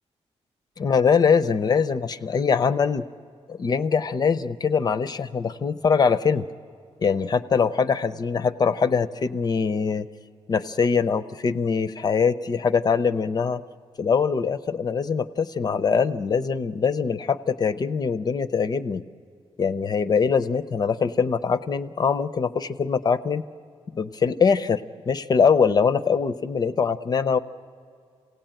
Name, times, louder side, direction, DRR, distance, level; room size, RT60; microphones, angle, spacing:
voice 1, 0.8-3.1 3.5-6.5 7.0-10.1 10.5-13.6 14.0-19.0 19.6-23.4 23.9-27.4, left 6 dB, 35° left, 12 dB, 0.5 m, -23 dB
27.5 x 17.0 x 8.9 m, 2.3 s
wide cardioid pair, 175°, 11 cm